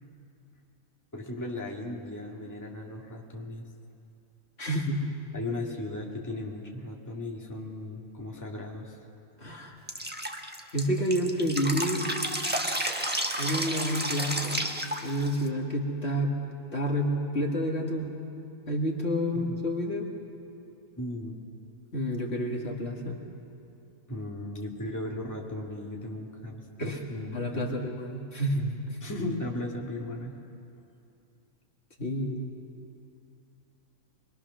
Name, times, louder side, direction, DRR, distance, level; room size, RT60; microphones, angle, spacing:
voice 1, 1.1-3.6 5.3-9.0 19.3-19.6 21.0-21.4 24.1-27.8 29.0-30.3, left 1 dB, 15° left, -1 dB, 1.9 m, -36 dB
voice 2, 4.6-5.0 9.4-9.7 10.7-12.0 13.3-14.7 15.0-16.4 16.7-18.1 18.7-20.1 21.9-23.2 26.8-27.0 27.3-29.0 32.0-32.5, equal, 50° left, -1 dB, 2.2 m, -29 dB
Drip, 9.9-15.5, right 1 dB, 10° right, 1.2 m, -31 dB
26.0 x 22.5 x 6.2 m, 2.7 s
omnidirectional pair, 1.4 m